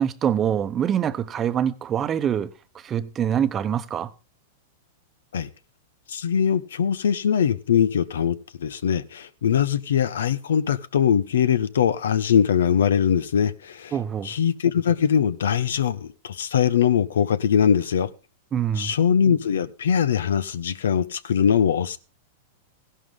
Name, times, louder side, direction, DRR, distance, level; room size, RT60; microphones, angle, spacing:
voice 1, 0.0-2.5 2.7-4.1 13.9-14.3 18.5-18.9, right 9 dB, 25° right, 0.9 m, -24 dB
voice 2, 6.1-13.9 14.2-18.1 18.8-22.0, left 8 dB, 85° left, 0.9 m, -22 dB
15.5 x 11.5 x 3.7 m
hypercardioid pair, 125°, 0 cm